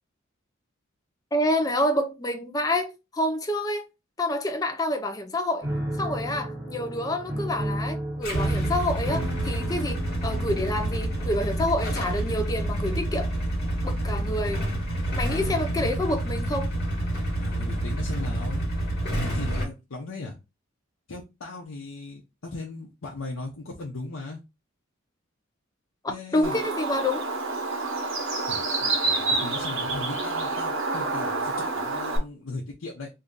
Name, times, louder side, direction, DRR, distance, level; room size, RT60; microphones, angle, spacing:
voice 1, 1.3-3.8 4.2-5.7 6.0-13.3 13.8-14.7 15.1-16.7 26.3-27.3, left 1 dB, 20° left, 0.5 m, -28 dB
Piano, 5.6-11.5, right 1 dB, 15° right, 1.4 m, -33 dB
Motorcycle / Engine starting / Idling, 8.2-19.7, right 1 dB, 55° left, 1.4 m, -28 dB
voice 2, 15.3-16.0 17.3-18.7 19.1-20.4 21.1-24.4 26.1-26.5 28.5-33.1, left 3 dB, 85° left, 0.7 m, -38 dB
Bird, 26.4-32.2, right 3 dB, 75° right, 1.1 m, -28 dB
2.7 x 2.7 x 3.6 m
head